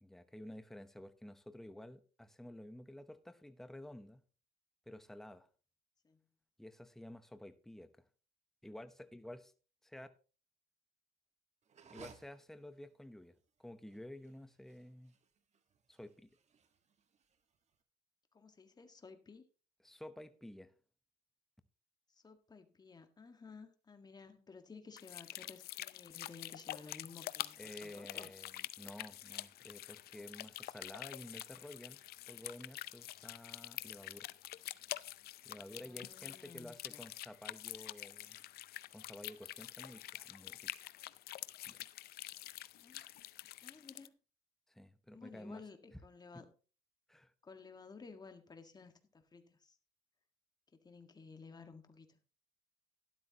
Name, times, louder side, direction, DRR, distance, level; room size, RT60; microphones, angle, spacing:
voice 1, 0.0-4.2 4.9-5.5 6.6-8.0 8.6-9.5 9.8-10.1 11.9-15.1 15.9-16.3 19.8-20.7 27.6-32.0 32.3-34.3 35.4-38.4 38.9-40.7 41.7-41.8 44.7-45.6 45.9-46.0 46.3-46.4 47.1-47.3, left 1 dB, ahead, 0.9 m, -52 dB
sound 1, 11.6-17.8, right 6 dB, 40° right, 1.6 m, -61 dB
voice 2, 18.3-19.5 22.1-28.3 35.8-37.0 42.8-43.0 43.6-44.2 45.1-46.5 47.4-49.8 50.8-52.2, left 4 dB, 25° left, 1.6 m, -55 dB
sound 2, 25.0-44.1, left 15 dB, 70° left, 0.6 m, -47 dB
12.5 x 12.0 x 2.9 m
cardioid pair, 110°, 17 cm